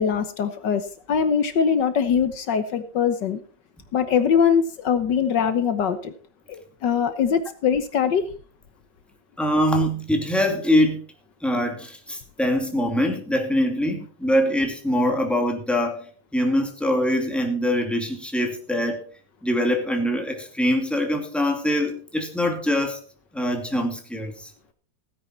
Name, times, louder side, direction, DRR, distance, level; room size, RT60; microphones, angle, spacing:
voice 1, 0.0-3.4 3.9-6.1 6.5-8.2, left 7 dB, 70° left, 10 dB, 1.6 m, -22 dB
voice 2, 9.4-11.0 11.4-19.0 19.4-23.0 23.3-24.5, equal, ahead, 2 dB, 2.5 m, -23 dB
16.5 x 10.0 x 4.4 m, 0.40 s
omnidirectional pair, 2.0 m